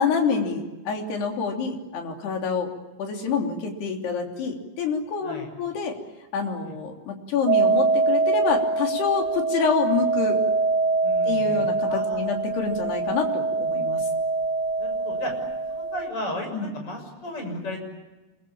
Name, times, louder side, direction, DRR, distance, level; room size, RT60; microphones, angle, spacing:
voice 1, 0.0-2.7 3.0-5.9 6.3-10.4 11.3-14.0 16.5-16.7, left 5 dB, 70° left, 2 dB, 5.2 m, -27 dB
sound 1, 7.5-16.1, right 3 dB, 85° right, 5.7 m, -24 dB
voice 2, 11.0-12.6 14.8-15.3 15.7-17.8, left 1 dB, 30° left, 3 dB, 7.7 m, -35 dB
28.0 x 22.5 x 8.7 m, 1.1 s
omnidirectional pair, 5.0 m